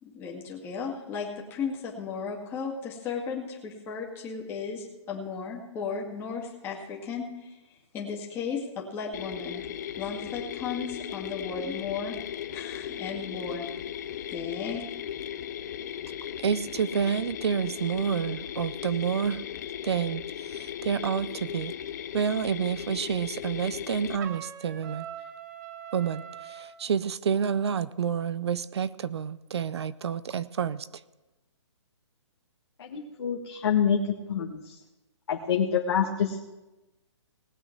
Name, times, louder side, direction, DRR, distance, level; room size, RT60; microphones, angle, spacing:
voice 1, 0.0-9.6 10.0-12.2 12.5-13.7 14.3-14.9, left 5 dB, 15° left, -2 dB, 2.1 m, -35 dB
Mechanisms, 9.1-24.2, left 10 dB, 35° left, 0.6 m, -37 dB
voice 2, 16.4-19.4 19.8-21.7 22.1-25.1 25.9-30.9, right 7 dB, 65° right, 16 dB, 0.6 m, -29 dB
Trumpet, 24.2-26.7, right 9 dB, 35° right, 1.0 m, -42 dB
voice 3, 32.8-34.0 34.3-34.8 35.3-36.4, left 8 dB, 55° left, -1 dB, 1.5 m, -26 dB
19.0 x 8.2 x 4.6 m, 1.0 s
hypercardioid pair, 165°, 15 cm